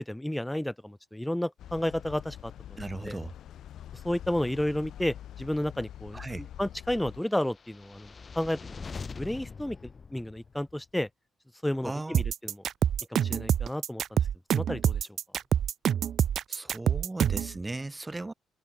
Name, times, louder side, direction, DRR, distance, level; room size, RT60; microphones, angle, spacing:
voice 1, 0.0-2.8 3.1-3.2 4.0-6.2 6.6-8.8 9.2-9.8 10.1-11.1 11.6-12.6 13.1-14.2 14.5-15.0, left 1 dB, 5° left, 0.3 m, -31 dB
sound 1, 1.6-7.2, left 11 dB, 70° left, 1.6 m, -45 dB
voice 2, 2.8-3.3 6.1-6.4 11.8-12.2 16.5-18.3, right 2 dB, 15° right, 1.3 m, -37 dB
sound 2, 7.4-10.8, left 5 dB, 35° left, 2.1 m, -43 dB
sound 3, 12.1-17.5, right 9 dB, 65° right, 0.5 m, -26 dB
cardioid pair, 90°, 0 cm